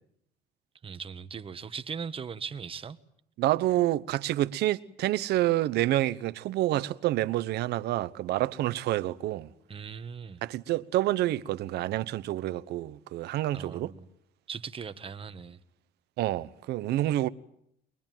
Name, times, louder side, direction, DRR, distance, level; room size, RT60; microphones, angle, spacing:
voice 1, 0.8-3.0 9.7-10.4 13.5-14.1 14.5-15.6, right 6 dB, 35° right, 1.4 m, -39 dB
voice 2, 3.4-9.5 10.4-13.9 16.2-17.3, right 15 dB, 75° right, 1.0 m, -28 dB
23.0 x 22.0 x 9.2 m
cardioid pair, 110°, 17 cm